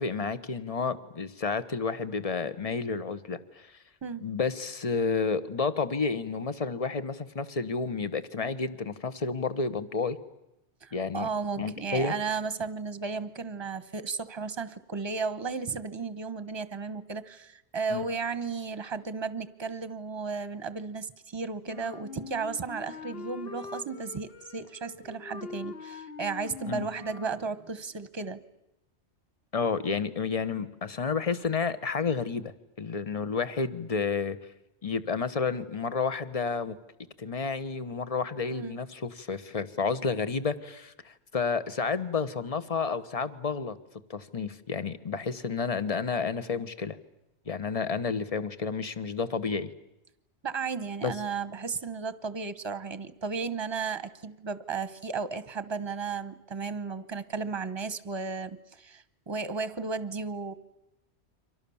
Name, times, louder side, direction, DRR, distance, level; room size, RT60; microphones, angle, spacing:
voice 1, 0.0-3.7 4.2-10.2 10.9-11.3 11.6-12.1 17.9-18.1 26.6-26.9 29.5-32.5 32.8-34.4 34.8-36.8 37.2-43.8 44.1-47.0 47.5-49.7 51.0-51.1, left 5 dB, 30° left, 13 dB, 1.2 m, -30 dB
voice 2, 10.8-28.4 38.5-38.8 50.4-60.5, right 5 dB, 25° right, 14 dB, 1.1 m, -34 dB
Wind instrument woodwind instrument, 21.7-27.5, left 4 dB, 55° left, 1.4 m, -43 dB
30.0 x 24.5 x 7.1 m, 0.87 s
omnidirectional pair, 1.2 m